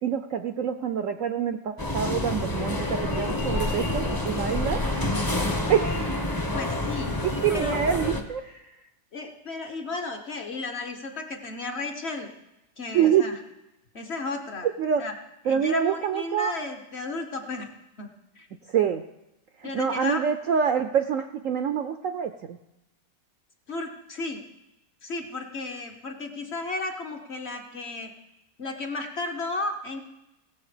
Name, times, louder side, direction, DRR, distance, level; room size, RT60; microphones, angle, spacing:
voice 1, 0.0-4.8 5.7-6.4 7.2-8.6 12.9-13.2 14.8-15.0 15.5-16.5 18.7-19.0 19.6-22.6, right 8 dB, 65° right, 8 dB, 0.8 m, -26 dB
sound 1, 1.8-8.2, left 1 dB, 20° left, 0.7 m, -28 dB
voice 2, 6.5-7.1 7.5-8.0 9.1-12.3 12.8-13.4 13.9-14.7 15.0-15.1 15.5-17.7 18.0-18.1 18.4-18.5 19.6-20.2 23.7-24.4 25.0-28.1 28.6-30.0, left 3 dB, 45° left, 4 dB, 1.0 m, -33 dB
18.0 x 7.2 x 4.9 m, 0.93 s
omnidirectional pair, 1.9 m